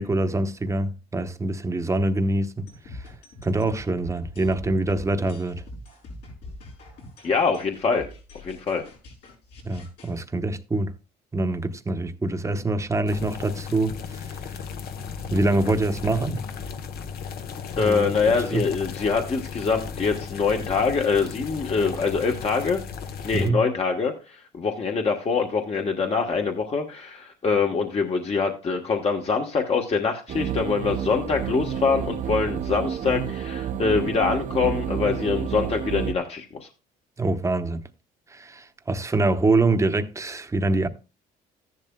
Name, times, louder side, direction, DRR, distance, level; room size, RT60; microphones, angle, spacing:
voice 1, 0.0-2.7 3.4-5.6 9.6-10.9 11.3-14.3 15.3-16.4 17.8-18.1 18.5-18.6 23.3-23.6 37.2-37.8 38.3-40.9, right 2 dB, 15° right, 0.9 m, -24 dB
sound 1, 2.7-10.2, left 1 dB, 80° left, 7.3 m, -43 dB
voice 2, 7.2-8.1 8.4-8.8 17.8-22.8 23.2-36.7, left 5 dB, 35° left, 1.1 m, -24 dB
sound 2, 13.1-23.5, left 6 dB, 65° left, 1.0 m, -35 dB
sound 3, 30.3-36.1, right 8 dB, 50° right, 0.7 m, -29 dB
14.0 x 11.0 x 2.2 m
cardioid pair, 110°, 17 cm